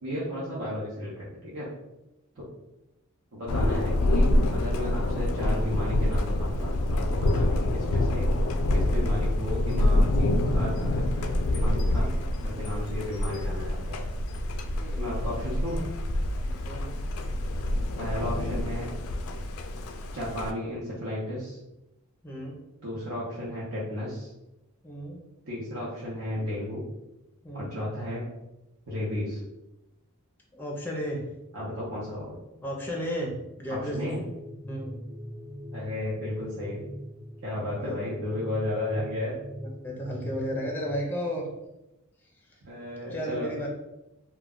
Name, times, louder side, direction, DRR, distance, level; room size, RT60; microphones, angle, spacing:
voice 1, 0.0-1.7 3.3-8.3 8.7-12.1 12.4-14.1 15.0-15.8 18.0-18.9 20.1-21.6 22.8-24.3 25.4-26.8 27.5-28.3 28.9-29.4 31.5-32.4 32.8-32.9 33.7-34.2 35.7-36.8 37.4-39.4 42.6-43.7, left 1 dB, 70° right, -7 dB, 0.7 m, -33 dB
Thunder, 3.5-20.5, left 1 dB, 70° left, 0.3 m, -26 dB
voice 2, 14.8-15.1 16.5-17.0 22.2-22.6 24.8-25.2 27.4-27.7 30.5-31.2 32.6-33.3 33.6-34.0 34.7-35.0 37.6-38.0 39.8-41.5 42.5-42.6 43.1-43.7, equal, 10° left, -1 dB, 0.4 m, -34 dB
sound 1, 34.1-40.9, equal, 40° right, 1.0 m, -41 dB
2.2 x 2.1 x 3.6 m, 0.92 s
head